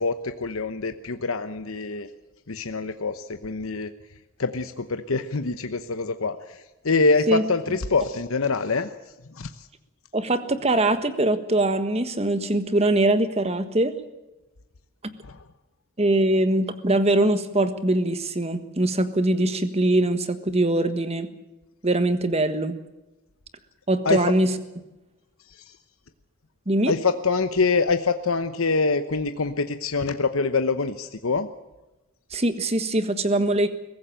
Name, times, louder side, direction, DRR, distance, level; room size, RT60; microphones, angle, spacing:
voice 1, 0.0-2.1 2.5-3.9 4.4-8.9 9.3-9.5 15.2-15.4 24.0-24.2 26.9-31.5, left 4 dB, 75° left, 9 dB, 1.0 m, -25 dB
voice 2, 10.1-14.0 16.0-21.3 21.8-22.8 23.9-24.5 26.7-26.9 32.3-33.7, right 1 dB, 30° right, 10 dB, 1.5 m, -22 dB
23.0 x 15.0 x 8.9 m, 1.0 s
head